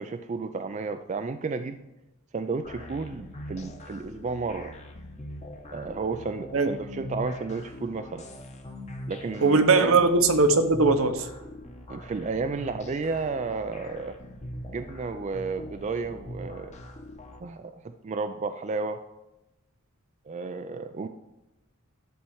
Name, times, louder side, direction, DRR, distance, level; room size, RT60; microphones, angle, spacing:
voice 1, 0.0-1.8 2.3-4.7 5.7-8.3 9.1-10.0 11.9-14.2 14.7-16.8 17.4-19.0 20.3-21.1, right 4 dB, 35° right, 8 dB, 0.4 m, -32 dB
sound 1, 2.6-17.4, left 1 dB, 30° left, 1.1 m, -42 dB
voice 2, 9.4-11.3, right 3 dB, 70° right, 8 dB, 1.0 m, -20 dB
12.0 x 4.3 x 7.0 m, 0.97 s
head